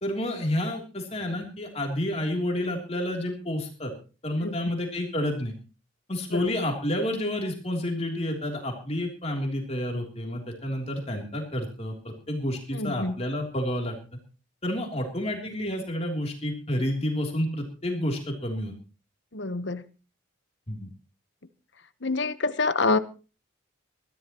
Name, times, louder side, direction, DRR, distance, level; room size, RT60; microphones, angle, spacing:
voice 1, 0.0-3.9 4.2-5.5 6.1-13.9 14.6-18.7 20.7-20.9, left 1 dB, 30° left, 1 dB, 3.3 m, -30 dB
voice 2, 4.4-4.8 6.3-6.5 12.7-13.1 19.3-19.8 22.0-23.0, left 3 dB, 60° left, 12 dB, 1.1 m, -27 dB
23.0 x 14.0 x 3.1 m, 0.35 s
head